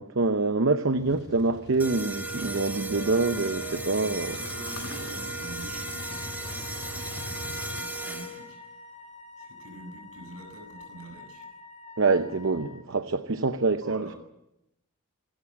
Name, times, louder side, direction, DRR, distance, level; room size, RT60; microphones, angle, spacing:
voice 1, 0.0-4.4 12.0-14.1, right 3 dB, 65° right, 0.8 m, -25 dB
sound 1, 0.9-7.8, left 2 dB, 50° left, 1.1 m, -43 dB
sound 2, 1.8-8.6, right 2 dB, 10° right, 1.7 m, -36 dB
Wind instrument woodwind instrument, 2.9-12.8, left 3 dB, 30° left, 3.2 m, -47 dB
voice 2, 4.3-8.6 9.4-11.5 13.8-14.2, right 1 dB, 80° right, 7.5 m, -45 dB
26.5 x 14.5 x 8.6 m
head